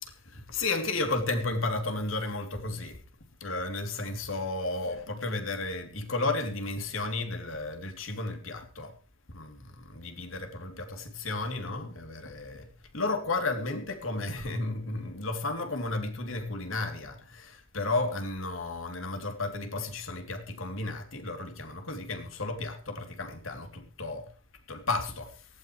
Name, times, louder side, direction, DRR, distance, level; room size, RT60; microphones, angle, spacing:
voice 1, 0.0-3.0 3.4-8.9 9.3-12.7 12.9-24.2 24.7-25.3, left 2 dB, 75° left, 3.2 m, -33 dB
18.5 x 16.0 x 3.3 m
head